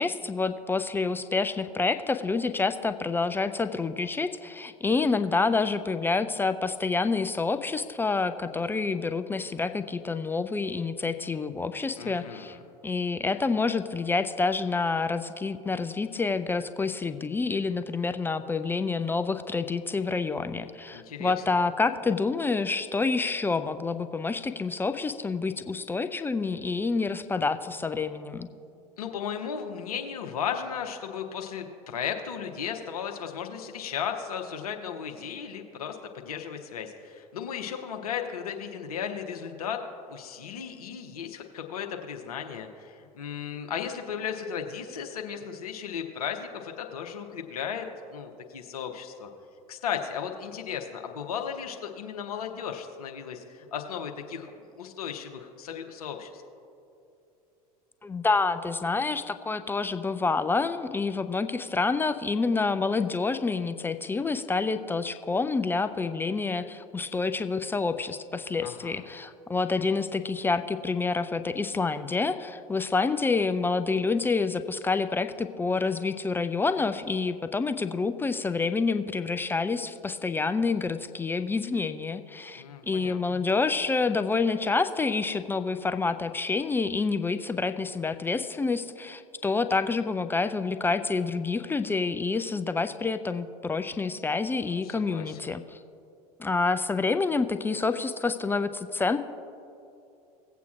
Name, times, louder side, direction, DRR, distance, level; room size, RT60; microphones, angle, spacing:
voice 1, 0.0-12.6 12.8-28.5 58.0-95.8 96.4-99.2, left 4 dB, 10° left, 10 dB, 0.3 m, -28 dB
voice 2, 12.0-12.6 20.9-21.4 29.0-39.8 40.1-49.3 49.7-54.5 54.8-56.4 68.6-69.0 82.5-83.4 94.6-95.4, left 7 dB, 70° left, 4 dB, 0.9 m, -35 dB
18.5 x 8.2 x 2.4 m, 2.7 s
figure-of-eight pair, 75°, 20 cm